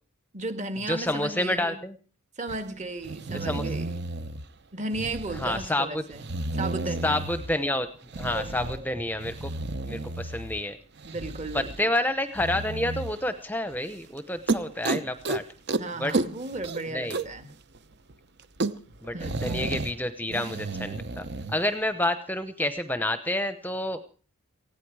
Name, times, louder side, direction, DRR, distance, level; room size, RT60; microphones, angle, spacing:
voice 1, 0.3-1.8 2.4-3.9 4.7-7.2 8.3-8.8 11.0-11.9 15.8-17.5 19.1-19.4, right 2 dB, 35° right, 8 dB, 2.0 m, -35 dB
voice 2, 0.9-1.9 3.3-3.7 5.4-6.0 7.0-7.9 8.2-9.5 9.9-10.8 11.5-15.4 16.0-16.1 16.9-17.2 19.0-19.1 19.4-24.0, left 1 dB, 10° left, 10 dB, 0.8 m, -29 dB
sound 1, 2.5-2.6 3.0-4.5 4.9-5.7 6.1-7.6 8.1-8.8 9.2-10.6 11.0-11.9 12.3-13.2 13.7-13.9 14.2-14.3 14.5-15.4 15.7-15.8 16.1-17.4 17.7-17.8 18.1-18.2 18.4-19.9 20.3-21.5, right 2 dB, 55° right, 1.0 m, -32 dB
19.0 x 15.5 x 4.8 m, 0.40 s
head